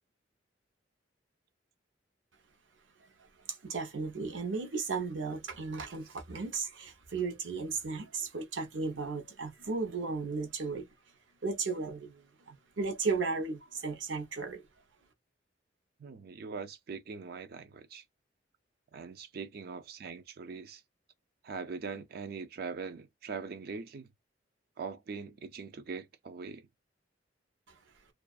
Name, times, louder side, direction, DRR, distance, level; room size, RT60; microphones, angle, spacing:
voice 1, 3.0-10.9 11.4-14.7 27.7-27.8, right 4 dB, 75° right, 0.7 m, -35 dB
voice 2, 16.0-18.0 18.9-20.8 21.4-24.1 24.8-26.7, right 5 dB, 55° right, 0.4 m, -42 dB
2.4 x 2.4 x 2.3 m
head